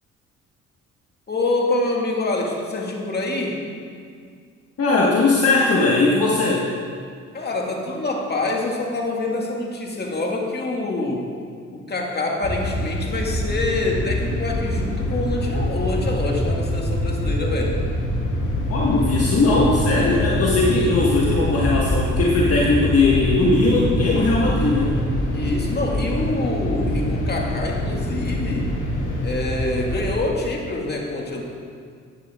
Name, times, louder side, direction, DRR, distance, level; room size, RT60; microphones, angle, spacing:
voice 1, 1.3-3.6 7.3-11.3 11.7-17.8 25.3-28.7 29.2-31.4, left 2 dB, 35° left, -1 dB, 2.2 m, -26 dB
voice 2, 4.8-6.7 18.7-25.0, left 3 dB, 50° left, -4 dB, 1.6 m, -19 dB
sound 1, 12.4-30.1, equal, 85° left, 2.5 m, -24 dB
14.5 x 8.7 x 3.7 m, 2.2 s
cardioid pair, 90°, 30 cm